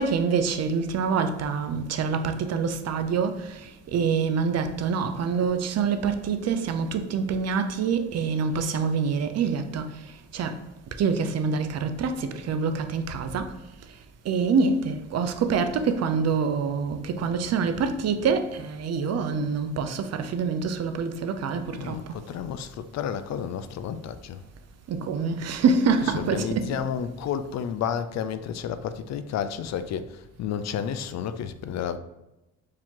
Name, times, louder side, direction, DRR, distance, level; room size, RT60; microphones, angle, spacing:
voice 1, 0.0-10.6 11.0-13.6 14.2-22.0 24.9-26.7, right 5 dB, 55° right, 0.6 m, -26 dB
voice 2, 21.7-24.4 26.0-32.0, left 8 dB, 60° left, 0.4 m, -31 dB
4.7 x 2.9 x 3.7 m
cardioid pair, 90°, 30 cm